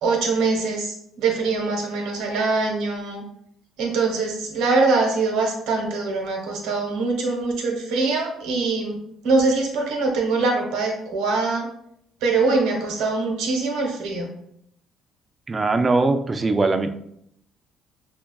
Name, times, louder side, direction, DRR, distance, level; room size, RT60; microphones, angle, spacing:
voice 1, 0.0-3.2 3.8-9.0 9.2-11.7 12.2-14.3, right 3 dB, 80° right, 1 dB, 1.0 m, -23 dB
voice 2, 15.5-16.9, right 3 dB, 25° right, 8 dB, 0.4 m, -21 dB
5.9 x 2.3 x 2.3 m, 0.74 s
supercardioid pair, 85°, 0 cm